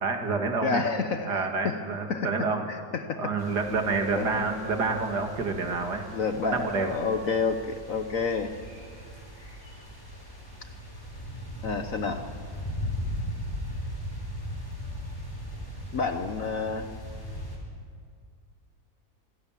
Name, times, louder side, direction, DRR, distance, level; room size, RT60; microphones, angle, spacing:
voice 1, 0.0-0.8 1.3-2.7 3.2-6.0 6.4-7.0, right 4 dB, 60° right, 4 dB, 2.6 m, -28 dB
voice 2, 0.6-1.8 2.1-2.3 2.7-3.3 4.1-4.4 6.1-8.5 11.6-12.2 15.9-16.9, left 5 dB, 55° left, 7 dB, 1.2 m, -29 dB
sound 1, 3.4-17.6, left 1 dB, 10° left, 4.8 m, -38 dB
25.5 x 17.0 x 7.3 m, 2.2 s
omnidirectional pair, 2.1 m